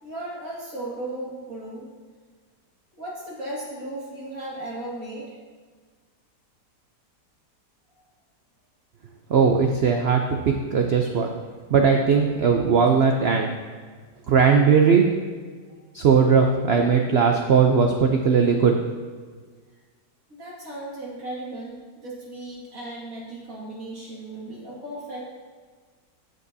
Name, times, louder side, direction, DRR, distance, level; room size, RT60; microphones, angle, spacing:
voice 1, 0.0-1.9 3.0-5.4 20.3-25.2, right 1 dB, 55° right, -5 dB, 2.4 m, -36 dB
voice 2, 9.3-11.3 11.7-13.5 14.3-15.1 15.9-18.9, right 6 dB, 75° right, 3 dB, 0.5 m, -19 dB
15.0 x 5.5 x 2.7 m, 1.6 s
omnidirectional pair, 1.8 m